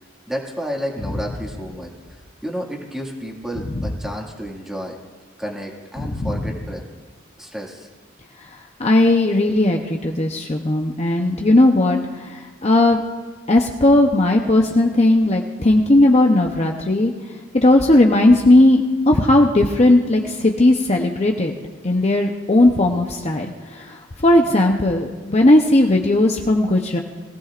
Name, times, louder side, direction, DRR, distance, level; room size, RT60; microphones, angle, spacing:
voice 1, 0.3-5.0 5.4-6.8 7.4-7.9, equal, ahead, -1 dB, 2.0 m, -31 dB
voice 2, 6.0-6.4 8.4-13.0 13.5-17.1 17.5-21.5 21.8-27.0, left 1 dB, 35° left, 2 dB, 0.8 m, -17 dB
21.5 x 16.0 x 2.5 m, 1.4 s
head